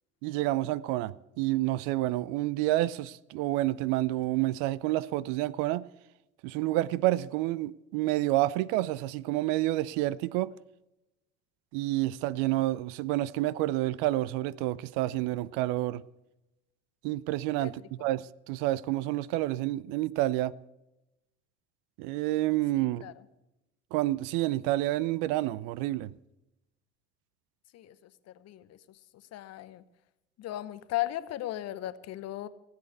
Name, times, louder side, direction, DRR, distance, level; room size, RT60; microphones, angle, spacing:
voice 1, 0.2-5.9 6.4-10.5 11.7-16.0 17.0-20.6 22.0-23.0 23.9-26.1, right 16 dB, 55° right, 0.5 m, -29 dB
voice 2, 28.3-28.8 29.3-29.8 30.4-32.5, left 15 dB, 45° left, 0.9 m, -36 dB
16.5 x 8.5 x 8.1 m
figure-of-eight pair, 65°, 36 cm